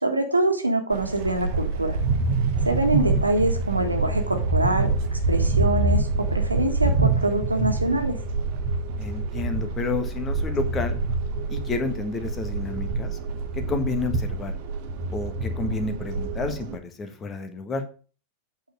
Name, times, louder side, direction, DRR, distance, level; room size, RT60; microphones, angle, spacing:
voice 1, 0.0-2.0 2.6-8.2, right 1 dB, 85° right, 5 dB, 1.6 m, -25 dB
sound 1, 0.9-16.8, right 3 dB, 45° right, 1.3 m, -26 dB
voice 2, 9.0-10.9 11.5-13.2 13.5-14.6 15.1-17.8, left 4 dB, 25° left, 8 dB, 1.5 m, -30 dB
8.6 x 4.8 x 6.5 m, 0.38 s
figure-of-eight pair, 90°, 0 cm